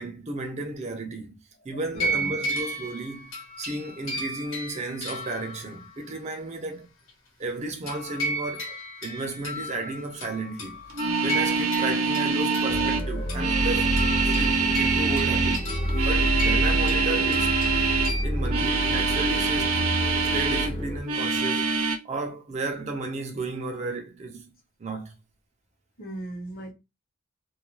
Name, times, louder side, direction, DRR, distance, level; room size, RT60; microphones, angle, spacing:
voice 1, 0.0-6.9 7.4-10.8 11.2-14.0 14.2-15.7 16.0-17.5 18.2-19.8 20.3-21.7 22.0-24.5 24.8-25.2, right 2 dB, 35° right, 0.4 m, -33 dB
voice 2, 1.7-2.4 26.0-26.7, right 1 dB, 45° left, 0.9 m, -38 dB
sound 1, 2.0-5.9 7.9-18.2, right 1 dB, 75° left, 1.0 m, -34 dB
sound 2, 10.9-18.2 18.4-20.7 21.0-22.0, right 4 dB, 85° right, 0.6 m, -25 dB
sound 3, 12.7-21.0, equal, 20° left, 0.5 m, -28 dB
2.3 x 2.2 x 2.9 m
head